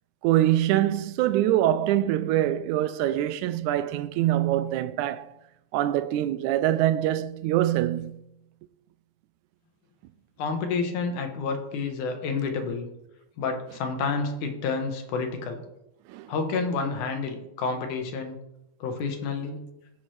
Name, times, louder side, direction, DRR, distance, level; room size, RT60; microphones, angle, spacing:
voice 1, 0.2-5.3 5.7-8.2 16.1-16.3, right 13 dB, 85° right, 2.0 m, -24 dB
voice 2, 10.4-12.9 13.4-15.6 16.3-18.4 18.8-19.6, left 4 dB, 80° left, 2.7 m, -29 dB
16.5 x 6.0 x 3.2 m
omnidirectional pair, 3.5 m